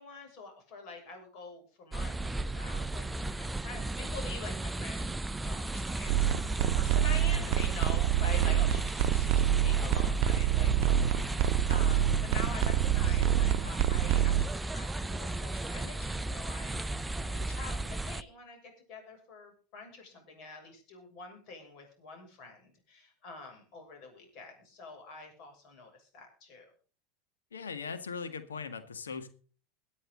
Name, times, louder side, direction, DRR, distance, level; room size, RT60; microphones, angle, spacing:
voice 1, 0.0-5.1 5.4-26.7, left 3 dB, 55° left, 3 dB, 6.8 m, -46 dB
sound 1, 1.9-18.2, right 2 dB, 10° right, 0.6 m, -34 dB
sound 2, 6.1-14.4, right 12 dB, 55° right, 0.8 m, -27 dB
voice 2, 27.5-29.3, left 5 dB, 85° left, 10 dB, 1.7 m, -39 dB
22.5 x 8.5 x 3.9 m, 0.40 s
hypercardioid pair, 85°, 0 cm